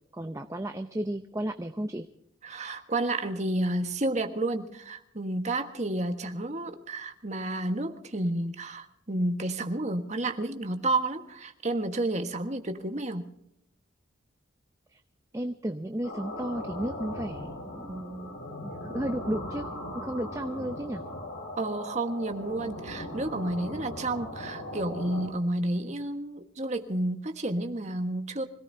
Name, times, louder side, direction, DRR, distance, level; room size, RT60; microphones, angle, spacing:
voice 1, 0.1-2.1 14.9-15.0 15.3-18.4 18.6-19.7 19.9-21.0, right 1 dB, 15° right, 6 dB, 0.6 m, -33 dB
voice 2, 2.4-13.3 21.6-28.4, right 2 dB, 35° right, 6 dB, 1.4 m, -31 dB
sound 1, 16.0-25.3, left 1 dB, 85° left, 6.6 m, -39 dB
25.5 x 17.5 x 2.8 m, 0.74 s
head